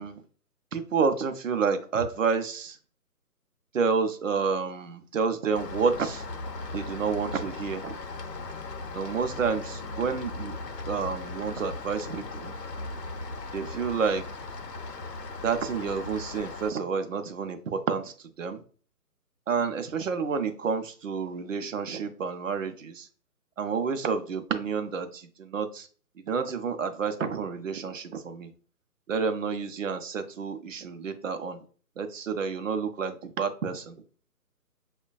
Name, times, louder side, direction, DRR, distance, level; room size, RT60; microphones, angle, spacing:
voice 1, 0.7-2.8 3.7-6.2 6.7-8.0 8.9-10.6 10.9-12.6 13.5-14.2 15.4-18.6 19.5-23.1 23.6-25.9 26.3-28.5 29.1-31.6 32.0-34.0, right 5 dB, 55° right, 8 dB, 0.5 m, -29 dB
Rain, 5.5-16.7, left 3 dB, 90° left, 0.6 m, -38 dB
6.0 x 2.2 x 2.4 m, 0.43 s
figure-of-eight pair, 145°, 48 cm